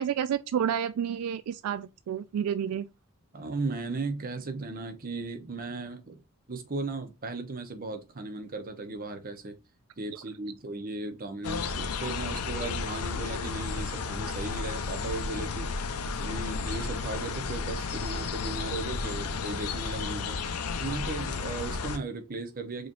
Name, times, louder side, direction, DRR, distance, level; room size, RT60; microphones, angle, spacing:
voice 1, 0.0-2.9, right 8 dB, 80° right, 0.3 m, -30 dB
voice 2, 3.3-6.2 6.5-9.6 10.0-15.7 16.2-20.4 20.8-22.9, right 3 dB, 40° right, 0.8 m, -36 dB
sound 1, 11.4-22.0, left 4 dB, 90° left, 0.6 m, -33 dB
4.8 x 3.1 x 2.5 m
head